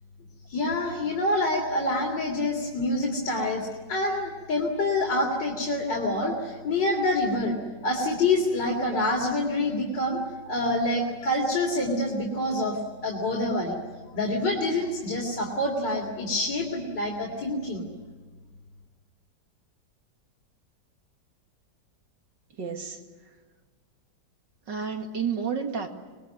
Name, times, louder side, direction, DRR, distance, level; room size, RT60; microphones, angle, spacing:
voice 1, 0.5-7.6 7.8-10.2 10.5-13.8 14.1-17.9, left 2 dB, 75° left, -1 dB, 3.8 m, -26 dB
voice 2, 22.6-23.0 24.7-25.9, right 6 dB, 80° right, 4 dB, 2.9 m, -30 dB
25.5 x 21.0 x 9.3 m, 1.4 s
omnidirectional pair, 1.9 m